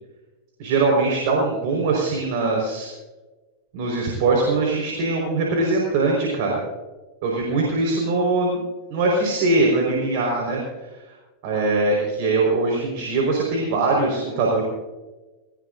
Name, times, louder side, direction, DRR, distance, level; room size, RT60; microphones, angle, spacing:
voice 1, 0.6-2.9 3.7-6.6 7.2-8.6 8.9-10.6 11.4-14.6, right 3 dB, 60° right, -1 dB, 4.9 m, -21 dB
20.5 x 19.5 x 2.7 m, 1.2 s
hypercardioid pair, 100°, 0 cm